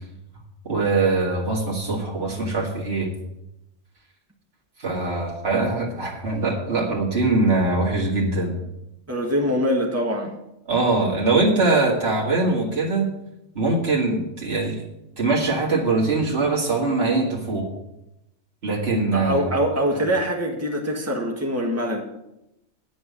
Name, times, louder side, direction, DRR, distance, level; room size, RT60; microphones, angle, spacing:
voice 1, 0.6-3.1 4.8-8.5 10.7-13.1 13.5-14.8 15.2-17.7 18.6-19.5 19.9-20.0, right 3 dB, 55° right, -4 dB, 2.4 m, -22 dB
voice 2, 9.1-10.3 19.1-22.0, equal, 10° right, -1 dB, 1.6 m, -23 dB
9.3 x 6.3 x 8.1 m, 0.87 s
omnidirectional pair, 1.2 m